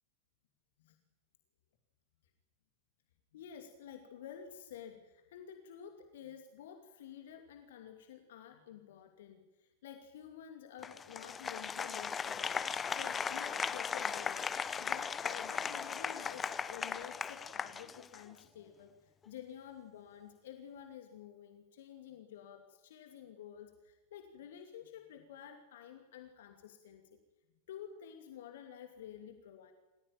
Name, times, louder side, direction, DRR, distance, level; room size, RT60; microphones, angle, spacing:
voice 1, 3.3-12.6 13.0-27.0 27.7-29.7, left 9 dB, 55° left, 6 dB, 2.6 m, -51 dB
Applause, 10.8-18.4, left 6 dB, 20° left, 1.1 m, -37 dB
27.5 x 16.0 x 9.1 m, 1.1 s
figure-of-eight pair, 90°, 0 cm